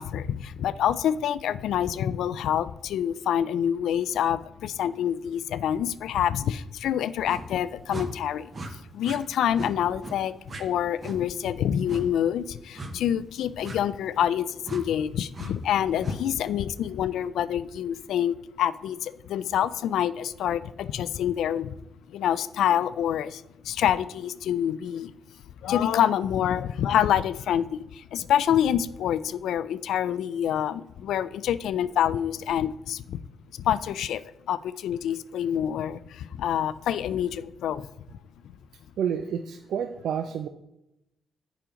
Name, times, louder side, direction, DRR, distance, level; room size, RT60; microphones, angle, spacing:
voice 1, 0.0-21.8 22.1-25.1 25.6-33.2 33.5-34.2 34.5-38.2, left 10 dB, 90° left, 16 dB, 0.3 m, -27 dB
sound 1, 7.2-7.4 7.9-8.1 8.5-8.7 9.0-9.2 9.5-9.7 10.0-10.2 10.5-10.6 11.0-11.2 11.9-12.0 12.8-12.9 13.6-13.8 14.6-14.8 15.3-15.5 16.0-16.2, right 2 dB, 30° right, 0.8 m, -37 dB
voice 2, 39.0-40.5, right 8 dB, 75° right, 8 dB, 0.4 m, -29 dB
7.4 x 5.0 x 5.0 m, 0.88 s
cardioid pair, 155°, 0 cm